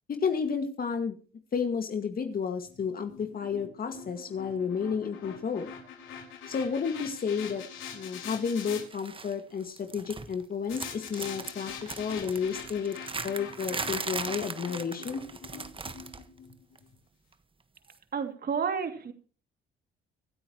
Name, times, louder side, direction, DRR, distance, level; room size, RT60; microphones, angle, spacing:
voice 1, 0.1-1.2 1.5-5.7 6.5-7.6 7.9-11.7 12.0-13.0 13.2-15.2, left 6 dB, 50° left, 6 dB, 2.1 m, -31 dB
sound 1, 2.6-8.8 10.7-16.9, left 7 dB, 85° left, 4.9 m, -44 dB
sound 2, 8.9-9.3 9.6-10.4 10.7-16.3 16.5-16.8 17.9-18.0, right 4 dB, 25° right, 1.5 m, -38 dB
voice 2, 18.1-19.1, right 6 dB, 50° right, 7 dB, 2.8 m, -30 dB
25.5 x 8.6 x 3.1 m, 0.38 s
cardioid pair, 90°, 20 cm